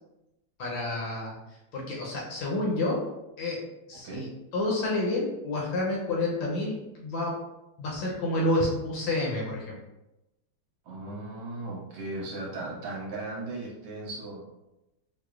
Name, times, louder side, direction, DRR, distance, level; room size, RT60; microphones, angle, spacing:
voice 1, 0.6-1.4 1.7-3.0 3.4-3.6 3.9-7.4 7.8-9.8, left 2 dB, 75° left, -3 dB, 1.2 m, -29 dB
voice 2, 10.8-14.4, right 2 dB, 70° right, -3 dB, 1.4 m, -37 dB
4.7 x 2.0 x 2.3 m, 0.95 s
omnidirectional pair, 2.4 m